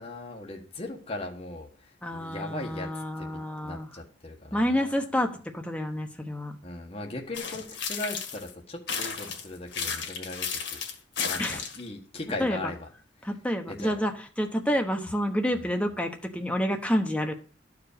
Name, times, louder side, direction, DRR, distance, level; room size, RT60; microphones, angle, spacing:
voice 1, 0.0-3.3 3.6-5.1 6.6-10.8 11.2-12.9 13.2-13.3 13.7-14.0 15.5-15.7, left 2 dB, 35° left, 0 dB, 1.3 m, -39 dB
voice 2, 2.0-3.9 4.5-5.3 5.5-6.5 11.4-11.6 12.4-12.6 13.2-14.1 14.4-17.3, equal, 5° left, 4 dB, 1.1 m, -28 dB
sound 1, 7.3-8.5 8.9-11.9, left 6 dB, 75° left, 1.9 m, -33 dB
11.5 x 4.9 x 6.6 m, 0.41 s
head